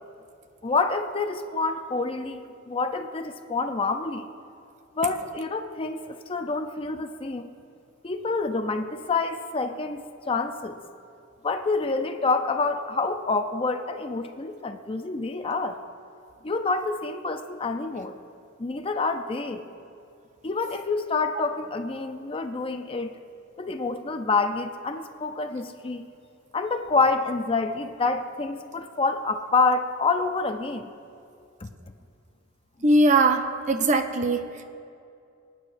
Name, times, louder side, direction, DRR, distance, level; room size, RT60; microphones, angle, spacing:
voice 1, 0.6-4.3 4.9-7.5 8.0-10.8 11.4-15.8 16.4-18.2 18.6-19.7 20.4-23.2 23.6-26.0 26.5-30.9 31.6-31.7, left 3 dB, 25° left, 7 dB, 0.5 m, -27 dB
voice 2, 32.8-34.6, right 2 dB, 35° right, 7 dB, 0.6 m, -21 dB
24.0 x 9.3 x 2.6 m, 2.5 s
head